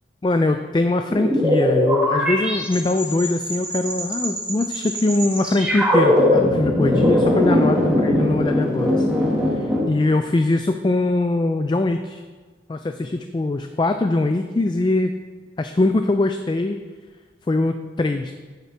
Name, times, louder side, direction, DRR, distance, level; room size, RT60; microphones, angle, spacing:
voice 1, 0.2-9.1 9.5-12.2 12.7-15.1 15.6-16.8 17.5-18.3, left 2 dB, 25° left, 7 dB, 0.3 m, -22 dB
sound 1, 1.1-9.8, left 1 dB, 5° right, 1.6 m, -20 dB
11.0 x 8.0 x 3.4 m, 1.4 s
head